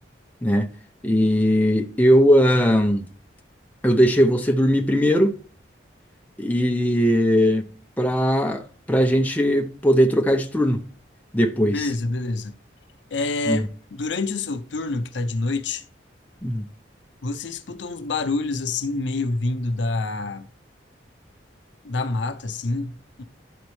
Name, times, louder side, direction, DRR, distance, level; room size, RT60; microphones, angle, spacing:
voice 1, 1.0-3.1 3.8-5.4 6.4-7.6 8.0-10.8 11.3-11.9 13.5-13.6 16.4-16.6, equal, 10° left, 0.6 m, -19 dB
voice 2, 11.7-12.5 13.1-15.8 17.2-20.5 21.8-23.2, left 3 dB, 80° left, 0.6 m, -27 dB
11.5 x 4.1 x 3.2 m
head